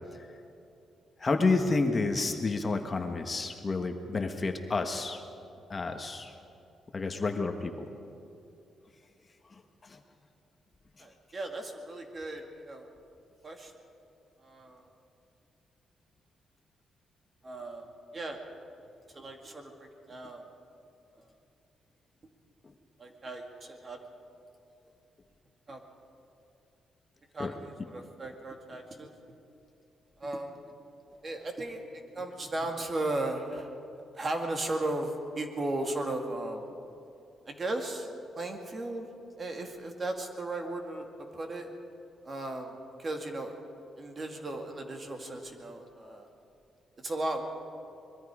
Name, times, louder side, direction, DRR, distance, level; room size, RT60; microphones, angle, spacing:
voice 1, 1.2-5.2 5.7-6.3 6.9-7.9 9.5-10.0 22.6-22.7 27.4-27.5, left 3 dB, 30° left, 5 dB, 1.3 m, -30 dB
voice 2, 11.0-12.9 13.4-13.7 14.4-14.9 17.4-17.8 18.1-18.4 19.1-20.4 23.0-24.0 25.7-25.8 27.3-29.1 30.2-30.5 31.2-33.7 34.1-36.6 37.5-38.1 38.4-41.7 42.2-43.5 44.0-46.3 47.0-47.4, right 2 dB, 35° right, 3 dB, 2.3 m, -36 dB
24.5 x 21.5 x 4.9 m, 2.7 s
cardioid pair, 120°, 0 cm